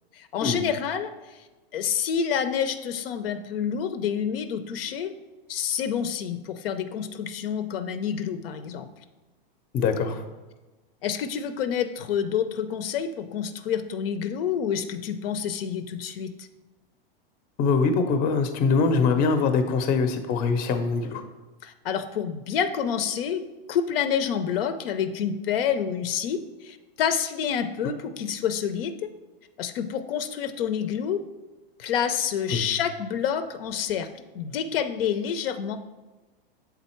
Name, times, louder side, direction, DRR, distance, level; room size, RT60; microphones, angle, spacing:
voice 1, 0.1-1.4 1.7-5.1 5.5-8.9 11.0-16.5 21.6-23.4 23.7-29.1 29.6-31.2 31.8-34.1 34.3-35.8, left 8 dB, 75° left, 9 dB, 0.6 m, -28 dB
voice 2, 9.7-10.2 17.6-21.2 32.5-32.6, left 4 dB, 30° left, 8 dB, 0.7 m, -23 dB
7.1 x 3.8 x 4.4 m, 1.2 s
supercardioid pair, 140°, 29 cm